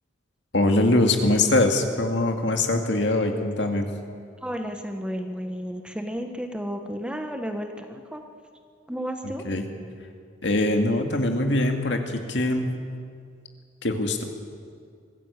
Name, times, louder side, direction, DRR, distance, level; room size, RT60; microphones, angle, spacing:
voice 1, 0.5-3.9 9.4-9.6 10.4-12.7 13.8-14.2, left 2 dB, 65° left, 4 dB, 2.3 m, -22 dB
voice 2, 4.4-8.2 8.9-9.4, equal, 5° right, 5 dB, 1.3 m, -32 dB
24.5 x 15.5 x 8.3 m, 2.3 s
head